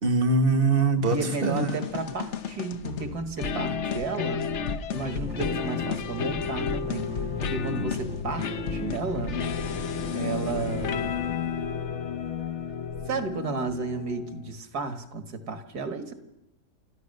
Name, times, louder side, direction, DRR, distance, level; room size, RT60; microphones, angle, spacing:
voice 1, 0.0-1.2 1.4-1.8, right 3 dB, 35° right, 10 dB, 1.3 m, -22 dB
sound 1, 1.1-14.5, left 7 dB, 50° left, 1.0 m, -32 dB
voice 2, 1.1-4.5 4.9-9.4 10.1-11.3 13.1-16.1, right 4 dB, 65° right, 8 dB, 2.2 m, -33 dB
sound 2, 2.3-2.4 2.7-2.8 3.1-13.7, left 1 dB, 5° right, 0.7 m, -41 dB
28.5 x 14.0 x 6.6 m, 0.88 s
omnidirectional pair, 1.8 m